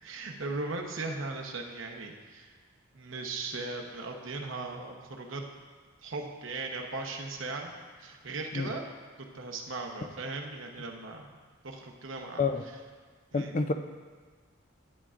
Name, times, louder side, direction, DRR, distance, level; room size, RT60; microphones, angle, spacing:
voice 1, 0.0-2.6 2.9-5.5 6.0-7.7 8.0-8.8 9.2-11.4 11.6-12.4 13.3-13.5, right 3 dB, 75° right, 1 dB, 0.9 m, -38 dB
voice 2, 13.3-13.7, left 4 dB, 40° left, 8 dB, 0.5 m, -28 dB
11.0 x 9.0 x 2.5 m, 1.5 s
head